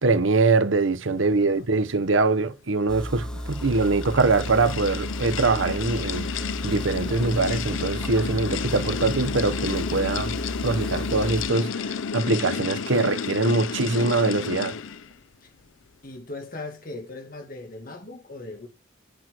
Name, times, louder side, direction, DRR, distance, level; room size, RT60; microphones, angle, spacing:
voice 1, 0.0-10.3 10.6-14.7, right 3 dB, 85° right, 0.9 m, -23 dB
voice 2, 1.2-1.6 15.4-15.5 16.0-18.7, left 2 dB, 45° left, 2.1 m, -39 dB
sound 1, 2.9-11.5, equal, 5° left, 1.1 m, -34 dB
sound 2, 3.0-15.1, left 6 dB, 85° left, 0.5 m, -32 dB
8.8 x 6.0 x 4.6 m
head